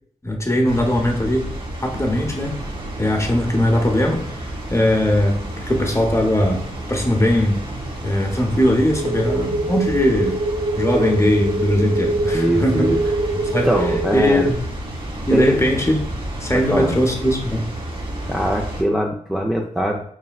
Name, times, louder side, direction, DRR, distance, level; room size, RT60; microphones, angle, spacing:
voice 1, 0.2-1.5 1.8-2.6 3.0-4.3 4.7-7.7 8.0-10.4 10.8-12.9 13.3-13.7 14.1-14.6 15.2-16.0 16.4-17.7, left 1 dB, 20° left, 2 dB, 0.8 m, -20 dB
Water, 0.7-18.8, right 1 dB, 35° right, 1.1 m, -31 dB
sound 1, 8.9-14.5, right 2 dB, 85° right, 1.1 m, -24 dB
voice 2, 12.3-13.0 13.6-14.5 15.3-15.6 16.5-16.9 18.3-20.0, equal, ahead, -2 dB, 0.5 m, -22 dB
4.7 x 3.2 x 2.3 m, 0.66 s
wide cardioid pair, 55°, 15 cm